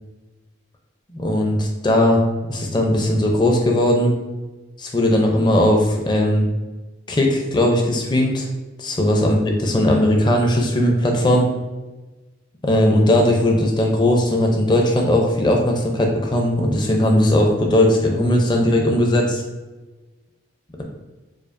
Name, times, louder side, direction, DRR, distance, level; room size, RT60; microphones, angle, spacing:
voice 1, 1.1-2.2 2.5-4.1 4.8-6.4 7.1-8.5 8.8-11.5 12.6-19.4, left 1 dB, 25° left, 1 dB, 0.5 m, -18 dB
4.9 x 2.3 x 2.5 m, 1.2 s
head